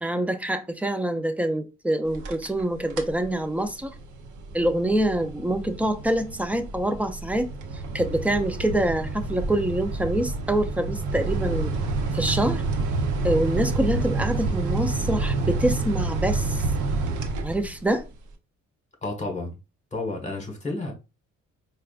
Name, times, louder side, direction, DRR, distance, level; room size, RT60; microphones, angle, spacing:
voice 1, 0.0-3.9 4.5-7.5 7.9-11.7 12.1-12.6 13.2-16.6 17.4-18.1, right 1 dB, 5° right, 0.5 m, -25 dB
sound 1, 2.1-2.6 2.9-3.2 3.7-18.0, right 3 dB, 80° right, 0.7 m, -28 dB
voice 2, 19.0-19.6 19.9-20.9, left 2 dB, 25° left, 1.5 m, -31 dB
4.7 x 2.3 x 2.4 m
cardioid pair, 90°, 30 cm